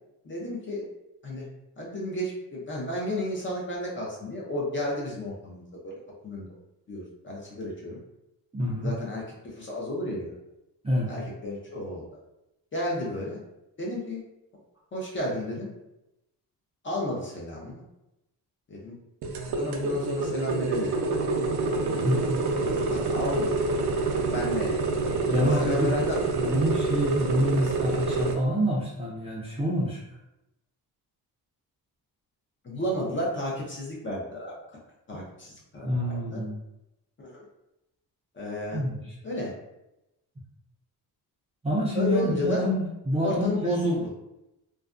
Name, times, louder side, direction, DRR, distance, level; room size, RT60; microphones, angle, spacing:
voice 1, 0.2-0.9 1.2-1.5 1.8-5.9 6.2-6.5 6.9-8.0 8.8-10.4 11.1-12.0 12.7-13.4 13.8-14.2 14.9-15.7 16.8-17.8 18.7-18.9 19.6-20.9 22.9-23.5 24.1-24.8 25.4-26.6 32.6-34.5 35.1-36.4 37.2-37.4 38.3-38.8 39.2-39.5 41.9-42.6 43.2-44.1, left 1 dB, 30° left, -4 dB, 0.6 m, -32 dB
voice 2, 8.5-8.9 10.8-11.1 21.9-22.4 25.3-25.9 26.4-30.0 35.8-36.6 38.7-39.1 41.6-43.9, equal, 15° right, -7 dB, 0.4 m, -27 dB
sound 1, 19.2-28.3, right 3 dB, 75° right, 0.5 m, -27 dB
2.4 x 2.1 x 2.4 m, 0.90 s
cardioid pair, 110°, 38 cm